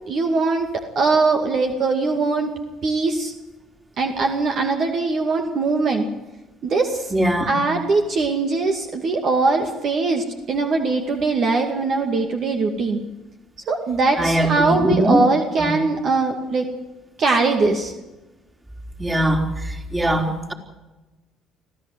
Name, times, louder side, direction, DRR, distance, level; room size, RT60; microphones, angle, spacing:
voice 1, 0.1-2.5 2.8-3.3 4.0-6.1 6.6-7.1 7.5-13.0 13.7-16.7 17.2-17.9, right 3 dB, 55° right, 3 dB, 2.3 m, -21 dB
voice 2, 7.1-7.5 14.2-15.3 15.6-15.7 19.0-20.5, right 1 dB, 20° right, 3 dB, 4.0 m, -21 dB
25.5 x 15.5 x 8.0 m, 1.1 s
hypercardioid pair, 60°, 0 cm